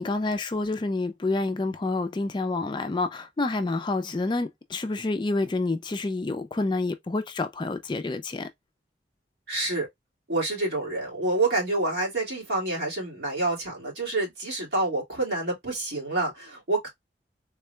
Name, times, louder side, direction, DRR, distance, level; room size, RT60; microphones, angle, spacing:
voice 1, 0.0-8.5, left 2 dB, 25° left, 0.3 m, -28 dB
voice 2, 9.5-9.9 10.3-16.9, right 2 dB, 70° right, 2.0 m, -28 dB
3.6 x 2.2 x 3.1 m
head